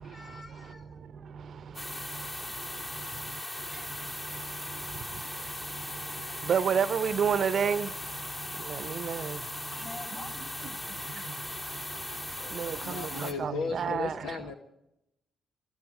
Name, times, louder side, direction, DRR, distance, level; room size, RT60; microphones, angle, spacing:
voice 1, 0.0-1.0 3.1-3.6 4.7-5.0 6.1-6.5 9.4-11.1, left 2 dB, 45° left, 6.9 m, -49 dB
sound 1, 1.7-13.3, left 1 dB, 25° left, 2.5 m, -38 dB
voice 2, 6.5-7.9 8.7-9.4 12.6-14.2, right 7 dB, 60° right, 0.8 m, -28 dB
voice 3, 12.4-14.6, left 5 dB, 75° left, 1.2 m, -36 dB
26.0 x 22.0 x 4.9 m
hypercardioid pair, 40°, 0 cm